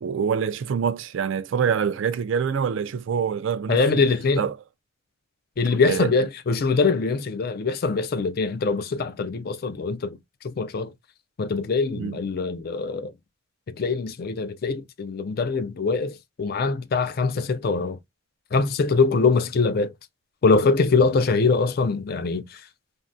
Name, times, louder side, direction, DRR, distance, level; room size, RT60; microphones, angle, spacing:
voice 1, 0.0-4.0 4.4-4.6 5.9-6.1 11.9-12.2, right 7 dB, 65° right, 0.3 m, -25 dB
voice 2, 3.7-4.4 5.6-10.2 10.4-10.9 11.4-13.1 13.7-18.0 18.5-19.9 20.4-22.5, left 4 dB, 45° left, 0.4 m, -23 dB
3.4 x 2.1 x 2.5 m
head